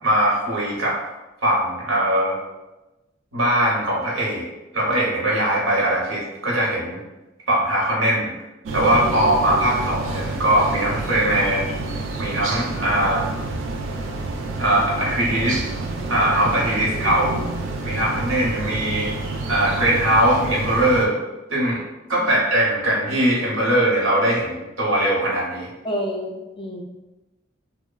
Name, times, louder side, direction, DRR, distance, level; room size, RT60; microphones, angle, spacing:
voice 1, 0.0-1.0 1.4-2.4 3.3-4.5 4.7-7.0 7.5-8.3 8.7-11.7 12.2-13.3 14.6-15.6 16.1-17.4 17.8-19.1 19.5-21.2 21.5-21.8 22.1-25.7, right 1 dB, 85° right, -4 dB, 0.9 m, -21 dB
sound 1, 8.7-21.1, right 2 dB, 70° right, 0.3 m, -29 dB
voice 2, 16.9-17.2 22.2-22.4 25.8-26.8, equal, 25° left, 0 dB, 0.3 m, -30 dB
3.0 x 2.1 x 2.3 m, 1.0 s
head